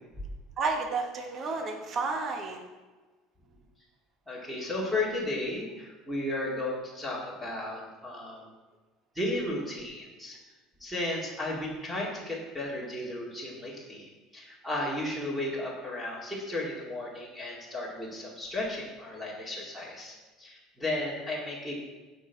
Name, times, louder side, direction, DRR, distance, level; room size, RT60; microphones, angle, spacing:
voice 1, 0.6-2.6, right 4 dB, 35° right, 2 dB, 1.3 m, -31 dB
voice 2, 4.3-8.5 9.1-10.4 10.8-21.7, left 1 dB, 5° right, -4 dB, 2.4 m, -34 dB
16.0 x 5.5 x 4.6 m, 1.3 s
cardioid pair, 145°, 0 cm